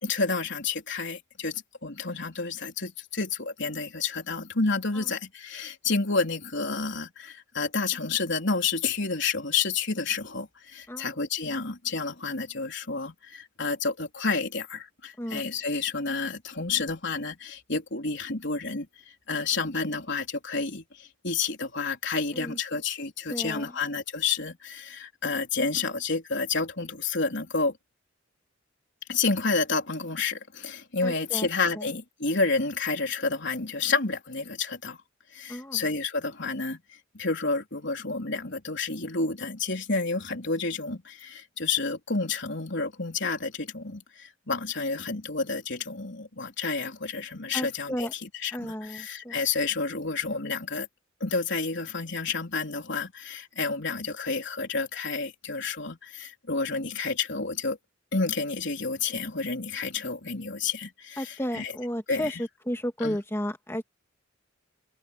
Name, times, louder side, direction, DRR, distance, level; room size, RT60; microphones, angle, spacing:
voice 1, 0.0-27.7 29.1-35.0 35.3-36.8 37.1-50.9 51.2-57.8 58.1-61.7 62.1-62.4 63.0-63.2, left 4 dB, 60° left, 4.2 m, -30 dB
voice 2, 23.3-23.7 31.0-31.5 31.7-31.9 35.5-35.9 47.5-48.1 48.5-49.4 61.2-63.8, equal, 10° left, 2.3 m, -33 dB
head